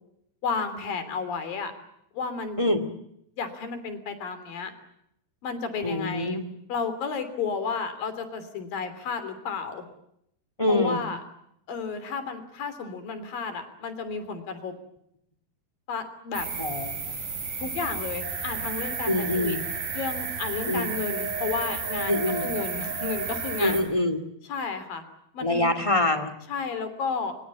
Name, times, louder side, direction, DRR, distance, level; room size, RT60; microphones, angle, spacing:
voice 1, 0.4-1.7 2.1-2.6 3.4-4.7 5.4-6.4 6.7-9.8 10.7-11.2 11.7-14.7 15.9-16.5 17.6-19.6 19.9-23.8 24.5-25.0 25.3-25.7 26.5-27.3, left 5 dB, 70° left, 10 dB, 4.8 m, -32 dB
voice 2, 5.8-6.4 10.6-11.0 16.6-17.1 19.0-19.6 20.7-20.9 22.1-22.5 23.6-24.2 25.4-26.3, left 1 dB, 15° left, 11 dB, 1.1 m, -25 dB
sound 1, 16.3-23.8, right 4 dB, 70° right, 7.7 m, -33 dB
sound 2, 18.2-23.8, right 5 dB, 45° right, 5.0 m, -36 dB
24.5 x 24.0 x 8.4 m, 0.76 s
omnidirectional pair, 4.3 m